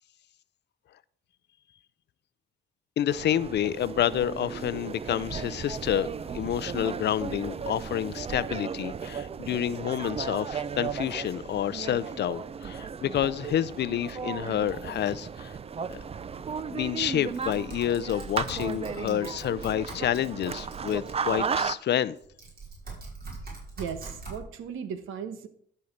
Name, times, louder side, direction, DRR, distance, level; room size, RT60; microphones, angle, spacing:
voice 1, 3.0-15.5 15.9-16.0 16.7-22.2, left 10 dB, 60° left, 0.6 m, -29 dB
sound 1, 3.1-21.7, right 6 dB, 30° right, 0.5 m, -35 dB
Typing, 17.3-21.5 22.2-24.4, right 2 dB, 50° right, 5.3 m, -43 dB
voice 2, 23.8-25.5, right 7 dB, 80° right, 1.3 m, -36 dB
12.5 x 5.7 x 6.5 m
cardioid pair, 90°, 20 cm